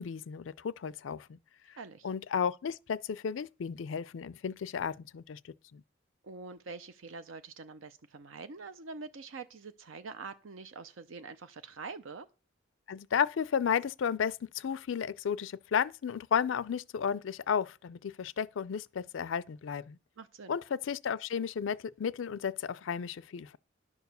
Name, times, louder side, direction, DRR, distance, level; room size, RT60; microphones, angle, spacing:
voice 1, 0.0-1.4 2.0-5.4 5.7-5.8 12.9-20.0 20.5-23.6, left 7 dB, 70° left, 0.4 m, -33 dB
voice 2, 1.8-2.1 6.2-12.3 20.2-20.6, right 4 dB, 75° right, 0.6 m, -45 dB
11.0 x 4.7 x 6.7 m
head